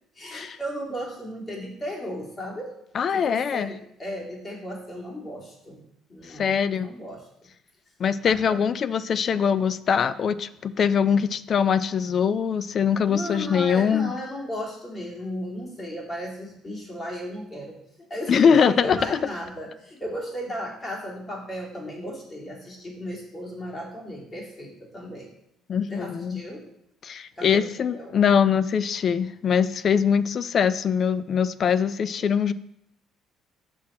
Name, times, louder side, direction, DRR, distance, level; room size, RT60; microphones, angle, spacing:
voice 1, 0.1-2.7 3.1-5.8 6.1-7.5 8.2-8.6 13.0-25.3 25.9-26.7 27.4-28.2, equal, 30° left, -3 dB, 2.4 m, -35 dB
voice 2, 2.9-3.7 6.3-6.9 8.0-14.1 18.3-19.2 25.7-26.4 27.0-32.5, left 7 dB, 45° left, 15 dB, 0.3 m, -22 dB
6.1 x 6.0 x 4.3 m, 0.78 s
cardioid pair, 100°, 0 cm